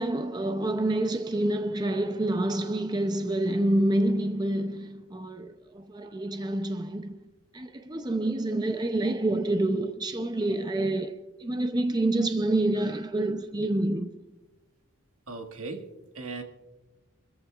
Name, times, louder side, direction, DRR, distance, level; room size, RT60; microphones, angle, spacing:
voice 1, 0.0-14.1, right 1 dB, 20° right, 0.5 m, -28 dB
voice 2, 15.3-16.4, right 3 dB, 80° right, 1.7 m, -38 dB
25.5 x 14.0 x 2.4 m
head